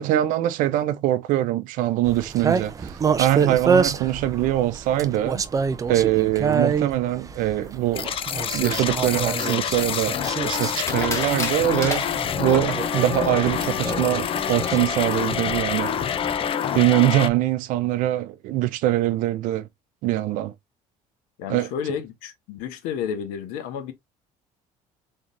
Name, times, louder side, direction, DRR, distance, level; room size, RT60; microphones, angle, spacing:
voice 1, 0.0-5.4 5.9-8.1 8.5-10.2 10.4-12.0 12.4-15.9 16.7-19.7 20.0-20.5 21.5-21.7, right 14 dB, 75° right, 0.6 m, -23 dB
sound 1, 2.0-16.5, right 6 dB, 25° right, 0.5 m, -28 dB
sound 2, 7.9-17.3, left 8 dB, 40° left, 0.5 m, -27 dB
sound 3, 9.4-10.2 10.8-12.8, left 2 dB, 20° left, 1.9 m, -31 dB
voice 2, 21.4-23.9, left 7 dB, 85° left, 1.2 m, -31 dB
3.7 x 3.3 x 2.6 m
cardioid pair, 115°, 14 cm